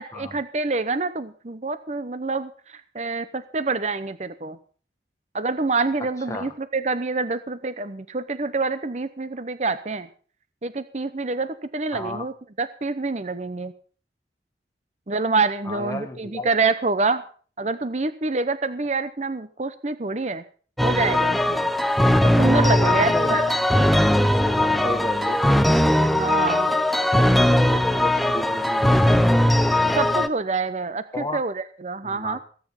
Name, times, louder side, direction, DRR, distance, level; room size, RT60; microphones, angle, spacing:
voice 1, 0.0-4.6 5.3-10.1 10.6-13.7 15.1-17.2 17.6-20.4 20.8-21.7 22.2-23.5 26.1-26.7 30.0-32.4, right 3 dB, 40° right, 13 dB, 0.8 m, -26 dB
voice 2, 11.9-12.2 15.6-16.5 22.8-25.4 27.3-29.0 31.1-31.4 32.0-32.4, left 1 dB, 20° left, 3 dB, 1.3 m, -33 dB
sound 1, 20.8-30.3, left 1 dB, ahead, 0.6 m, -19 dB
18.5 x 9.5 x 5.7 m, 0.43 s
head